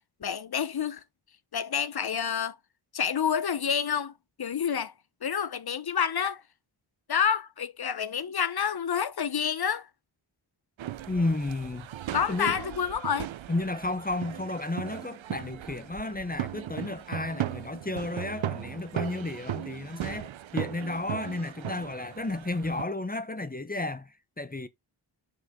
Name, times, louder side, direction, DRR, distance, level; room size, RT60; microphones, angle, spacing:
voice 1, 0.2-1.0 1.5-2.6 2.9-4.1 4.4-4.9 5.2-6.4 7.1-9.9 12.1-13.3, left 7 dB, 50° left, 1.0 m, -28 dB
sound 1, 10.8-22.8, right 12 dB, 70° right, 0.7 m, -37 dB
voice 2, 11.1-11.9 12.3-12.6 13.5-24.1 24.4-24.7, left 2 dB, 20° left, 1.0 m, -32 dB
6.6 x 4.6 x 3.7 m
cardioid pair, 50°, 49 cm